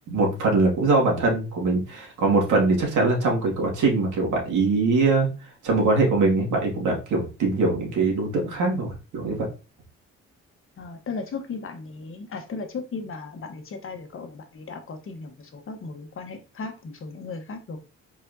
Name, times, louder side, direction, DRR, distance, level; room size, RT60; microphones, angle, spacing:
voice 1, 0.1-5.3 5.6-9.5, right 3 dB, 75° right, -1 dB, 2.1 m, -22 dB
voice 2, 10.8-15.3 15.7-17.8, left 4 dB, 45° left, 5 dB, 1.1 m, -36 dB
4.5 x 4.2 x 2.7 m, 0.32 s
cardioid pair, 90°, 30 cm